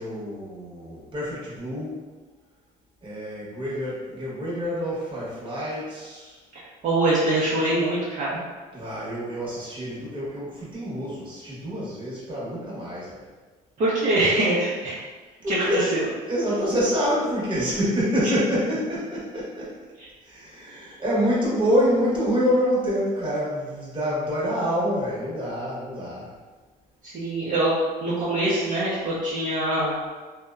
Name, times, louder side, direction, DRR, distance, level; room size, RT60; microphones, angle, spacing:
voice 1, 0.0-2.0 3.0-6.4 8.7-13.3 15.4-15.9 16.3-19.8 20.2-26.3, equal, 30° right, -7 dB, 1.0 m, -26 dB
voice 2, 6.5-8.4 13.8-15.0 15.5-16.0 18.2-18.3 20.0-20.1 27.0-27.7 28.0-29.9, right 2 dB, 50° right, -9 dB, 0.7 m, -24 dB
2.7 x 2.1 x 2.3 m, 1.3 s
cardioid pair, 110°, 17 cm